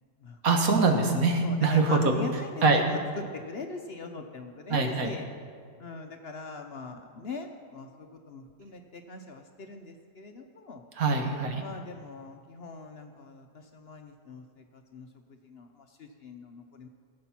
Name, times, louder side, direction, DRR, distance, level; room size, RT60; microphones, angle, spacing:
voice 1, 0.4-2.1 2.6-2.8 4.7-5.1 11.0-11.6, right 3 dB, 70° right, 4 dB, 1.7 m, -23 dB
voice 2, 1.4-5.3 5.8-10.8 11.6-15.1 15.4-16.9, left 3 dB, 50° left, 5 dB, 0.8 m, -42 dB
17.0 x 7.7 x 5.8 m, 2.1 s
omnidirectional pair, 1.6 m